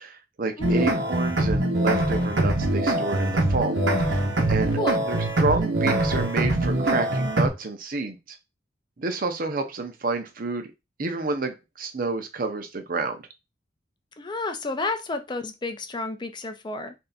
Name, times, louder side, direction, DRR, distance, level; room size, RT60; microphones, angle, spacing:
voice 1, 0.0-8.4 9.0-10.7 11.0-13.2, right 3 dB, 50° right, 0.7 m, -29 dB
voice 2, 0.6-1.0 4.8-5.0 14.2-16.9, left 3 dB, 25° left, 0.5 m, -31 dB
sound 1, 0.6-7.5, right 1 dB, 85° right, 1.0 m, -23 dB
3.3 x 2.7 x 4.0 m
head